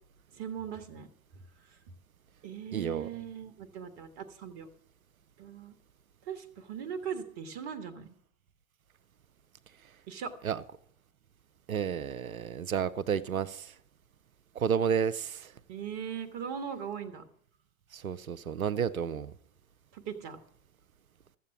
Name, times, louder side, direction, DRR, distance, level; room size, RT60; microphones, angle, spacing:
voice 1, 0.3-1.1 2.4-4.7 5.4-5.8 6.3-8.1 10.1-10.3 15.7-17.2 19.9-20.4, right 8 dB, 50° right, 1.5 m, -39 dB
voice 2, 2.7-3.1 10.4-10.6 11.7-13.7 14.6-15.5 17.9-19.3, right 7 dB, 85° right, 0.6 m, -31 dB
14.0 x 7.6 x 5.9 m
figure-of-eight pair, 90°, 41 cm